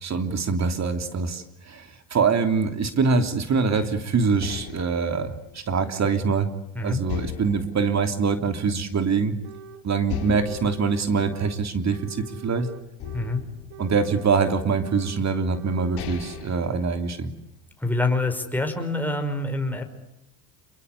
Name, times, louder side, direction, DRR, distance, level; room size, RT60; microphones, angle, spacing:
voice 1, 0.0-6.5 6.8-9.3 9.8-12.7 13.8-17.3, right 5 dB, 35° right, 7 dB, 3.3 m, -24 dB
sound 1, 3.7-6.6 7.1-9.0 9.4-9.5 10.1-12.4 13.0-14.6 15.3-15.4 15.8-17.6, left 13 dB, 55° left, 2.6 m, -39 dB
sound 2, 9.4-9.8 10.1-11.6 11.9-13.4 13.7-15.2 15.5-16.4, right 6 dB, 60° right, 3.1 m, -44 dB
voice 2, 17.8-19.8, left 2 dB, 5° left, 4 dB, 5.5 m, -26 dB
28.5 x 22.5 x 8.4 m, 0.82 s
supercardioid pair, 95°, 47 cm